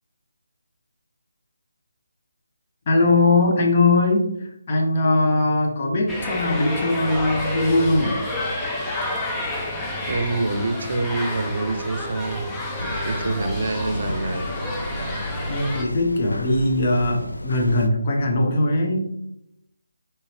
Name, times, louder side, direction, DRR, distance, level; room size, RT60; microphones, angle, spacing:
voice 1, 2.9-8.2 15.5-19.2, left 2 dB, 35° left, 1 dB, 0.9 m, -20 dB
sound 1, 6.1-15.8, left 1 dB, 10° left, 0.5 m, -29 dB
voice 2, 10.1-12.5 13.1-14.5, right 2 dB, 60° right, 7 dB, 0.6 m, -26 dB
sound 2, 12.8-17.9, left 1 dB, 90° left, 0.5 m, -32 dB
4.3 x 3.1 x 3.3 m, 0.81 s
figure-of-eight pair, 160°, 0 cm